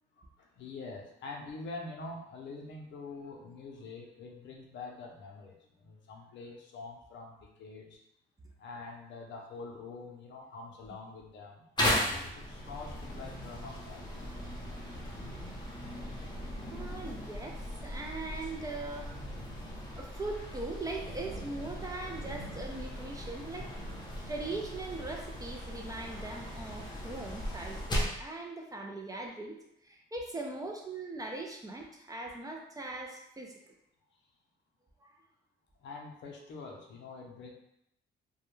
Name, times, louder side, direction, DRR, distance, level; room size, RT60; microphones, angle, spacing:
voice 1, 0.2-8.0 8.6-14.3 35.8-37.5, left 3 dB, 65° left, 1 dB, 0.6 m, -45 dB
sound 1, 11.8-28.2, equal, 20° left, 0.7 m, -38 dB
voice 2, 16.7-19.1 19.9-23.7 24.0-29.6 29.8-33.7 35.0-35.1, right 2 dB, 20° right, 1 dB, 0.4 m, -40 dB
2.2 x 2.1 x 3.0 m, 0.78 s
cardioid pair, 90°, 20 cm